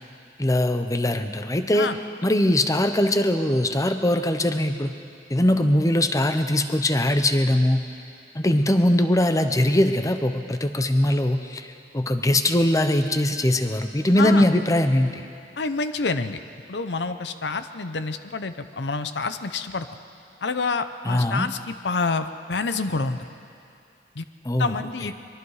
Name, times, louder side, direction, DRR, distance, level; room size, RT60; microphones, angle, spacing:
voice 1, 0.4-1.9 2.2-4.9 5.3-7.8 8.3-11.7 11.9-15.2 21.0-21.5 24.4-24.7, left 1 dB, 20° left, 8 dB, 0.9 m, -21 dB
voice 2, 15.6-16.4 16.7-19.9 20.4-23.3 24.2-24.3 24.6-25.1, left 4 dB, 75° left, 10 dB, 0.8 m, -27 dB
23.5 x 22.5 x 4.9 m, 2.5 s
head